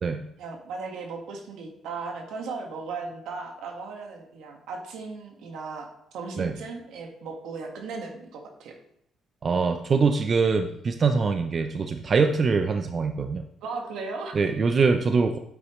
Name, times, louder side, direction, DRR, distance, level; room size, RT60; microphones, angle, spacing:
voice 1, 0.4-5.9 6.1-8.7 13.6-14.4, right 4 dB, 80° right, 2 dB, 1.7 m, -36 dB
voice 2, 9.4-13.4 14.3-15.4, right 4 dB, 45° right, 7 dB, 0.6 m, -23 dB
8.6 x 8.3 x 3.2 m, 0.73 s
cardioid pair, 85°, 0 cm